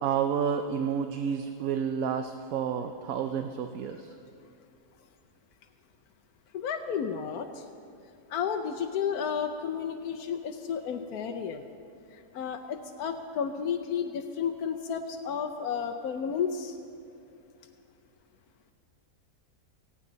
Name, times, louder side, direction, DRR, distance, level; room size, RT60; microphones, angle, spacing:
voice 1, 0.0-4.1, right 7 dB, 65° right, 6 dB, 1.0 m, -30 dB
voice 2, 6.5-7.7 8.3-11.7 12.1-16.8, left 7 dB, 70° left, 4 dB, 1.2 m, -32 dB
17.5 x 16.0 x 4.0 m, 2.7 s
omnidirectional pair, 1.7 m